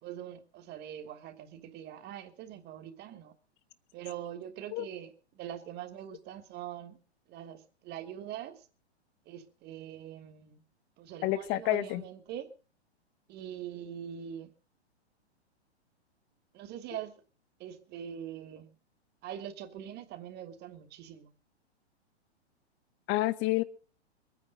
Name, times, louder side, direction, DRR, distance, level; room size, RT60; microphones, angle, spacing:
voice 1, 0.0-3.3 3.9-7.0 7.3-8.6 9.3-10.6 11.0-12.5 13.3-14.5 16.5-17.2 17.6-18.7 19.2-21.3, right 10 dB, 30° right, 2.9 m, -43 dB
voice 2, 11.2-12.0 23.1-23.6, left 16 dB, 35° left, 1.7 m, -29 dB
24.0 x 9.9 x 5.3 m
hypercardioid pair, 115°, 33 cm